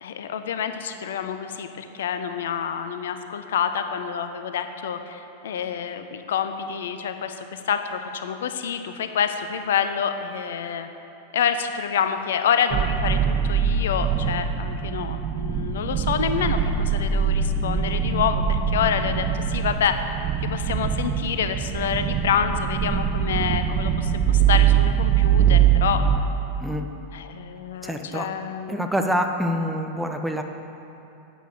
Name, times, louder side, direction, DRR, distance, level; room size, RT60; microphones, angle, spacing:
voice 1, 0.0-10.9 11.3-19.9 20.4-26.0 27.1-28.8, left 8 dB, 60° left, 9 dB, 0.6 m, -27 dB
sound 1, 12.7-26.2, right 8 dB, 30° right, 0.9 m, -23 dB
voice 2, 27.8-28.3 28.7-30.4, equal, 5° right, 4 dB, 0.9 m, -26 dB
11.0 x 8.9 x 6.7 m, 2.9 s
figure-of-eight pair, 90°, 0 cm